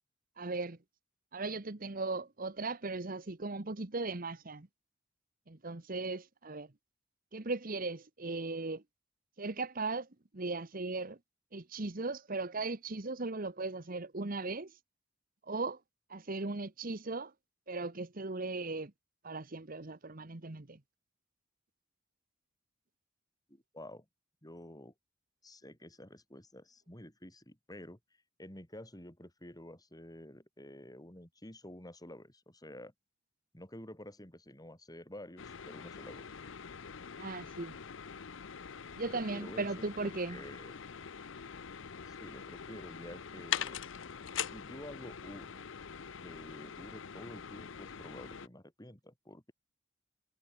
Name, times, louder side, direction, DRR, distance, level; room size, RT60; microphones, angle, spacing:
voice 1, 0.4-0.8 1.3-4.7 5.5-6.7 7.3-8.8 9.4-10.1 10.3-11.2 11.5-14.8 15.4-15.8 16.1-17.3 17.7-18.9 19.2-20.8 37.2-37.8 38.9-40.4, right 3 dB, 45° right, 1.2 m, -37 dB
voice 2, 23.5-24.1 24.4-24.9 25.4-28.0 28.4-32.9 33.5-36.3 39.1-40.7 42.1-43.8 44.5-45.6 46.2-49.5, left 1 dB, 20° left, 5.8 m, -50 dB
sound 1, 35.4-48.5, left 8 dB, 70° left, 0.7 m, -43 dB
head